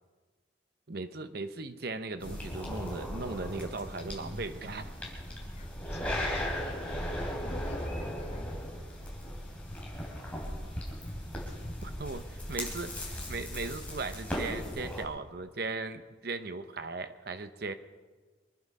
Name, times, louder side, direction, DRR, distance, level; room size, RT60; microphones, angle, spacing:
voice 1, 0.9-4.9 11.8-17.7, right 3 dB, 55° right, 10 dB, 0.8 m, -38 dB
sound 1, 2.2-15.0, equal, 5° left, 3.2 m, -37 dB
voice 2, 5.6-8.6, left 2 dB, 35° left, 6 dB, 1.1 m, -50 dB
23.5 x 9.7 x 5.4 m, 1.4 s
head